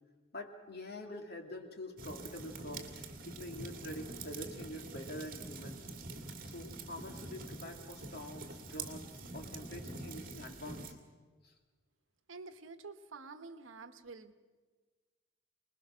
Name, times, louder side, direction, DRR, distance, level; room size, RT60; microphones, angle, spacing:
voice 1, 0.3-5.9 6.4-11.0 11.4-11.5, left 1 dB, 50° left, 4 dB, 2.2 m, -46 dB
sound 1, 2.0-10.9, right 3 dB, 45° right, 2.2 m, -46 dB
voice 2, 12.3-14.3, right 4 dB, 75° right, 10 dB, 1.2 m, -49 dB
26.0 x 20.5 x 6.2 m, 1.4 s
head